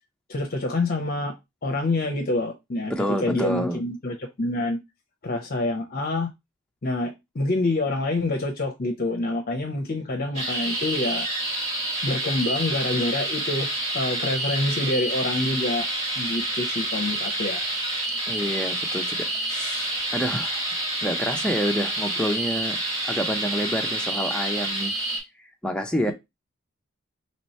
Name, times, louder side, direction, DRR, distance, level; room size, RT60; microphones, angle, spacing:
voice 1, 0.3-1.3 1.6-4.8 5.2-6.3 6.8-11.3 12.0-13.7 13.9-15.9 16.2-17.6, left 2 dB, 45° left, 0.6 m, -27 dB
voice 2, 2.9-3.8 18.3-20.7 21.0-22.8 23.0-24.9 25.6-26.1, equal, 5° left, 0.4 m, -28 dB
sound 1, 10.3-25.2, right 1 dB, 25° right, 1.5 m, -28 dB
3.1 x 3.0 x 4.1 m
head